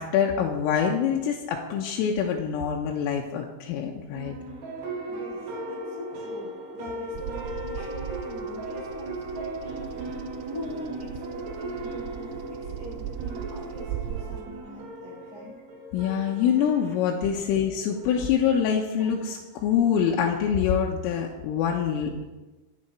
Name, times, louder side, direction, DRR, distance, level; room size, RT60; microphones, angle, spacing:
voice 1, 0.0-4.4 15.9-22.3, left 8 dB, 80° left, 0 dB, 3.6 m, -25 dB
sound 1, 4.1-19.7, right 2 dB, 55° right, 4.1 m, -38 dB
voice 2, 5.1-15.5 17.3-17.4, equal, 30° right, -8 dB, 7.6 m, -42 dB
Bird vocalization bird call bird song, 7.1-14.4, right 11 dB, 85° right, 2.5 m, -39 dB
24.5 x 9.9 x 4.4 m, 1.2 s
omnidirectional pair, 6.0 m